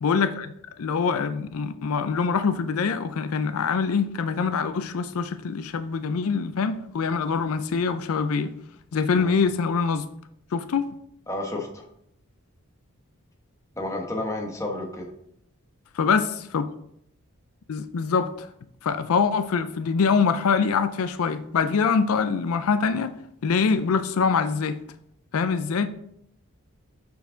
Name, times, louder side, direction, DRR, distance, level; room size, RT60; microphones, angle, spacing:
voice 1, 0.0-8.5 8.9-10.1 10.5-10.9 15.9-16.7 17.7-18.5 18.8-23.2 23.4-24.8 25.3-25.9, left 5 dB, 80° left, 0.4 m, -24 dB
voice 2, 11.3-11.9 13.8-15.1, left 1 dB, 15° left, 1.1 m, -31 dB
6.3 x 5.7 x 3.8 m
head